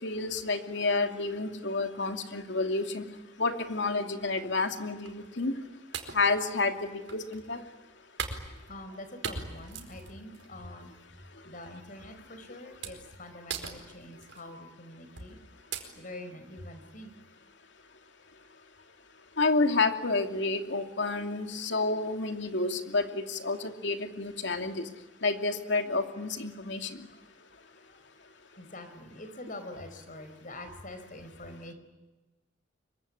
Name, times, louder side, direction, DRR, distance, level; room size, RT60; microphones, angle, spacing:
voice 1, 0.0-3.0 3.4-5.5 6.1-7.6 19.4-24.9 25.2-27.1, left 3 dB, 70° left, 6 dB, 2.7 m, -30 dB
sound 1, 5.0-5.3 5.9-7.5 8.2-9.0 9.2-10.5 10.9-11.2 12.0-12.2 12.8-13.1 13.5-14.4 15.2-15.4 15.7-15.8, right 5 dB, 75° right, 4.6 m, -39 dB
voice 2, 8.7-10.9 11.4-15.4 15.8-17.1 27.0-27.2 27.5-28.0 28.6-31.7, left 1 dB, 45° left, 8 dB, 4.9 m, -45 dB
25.5 x 23.5 x 9.9 m, 1.1 s
head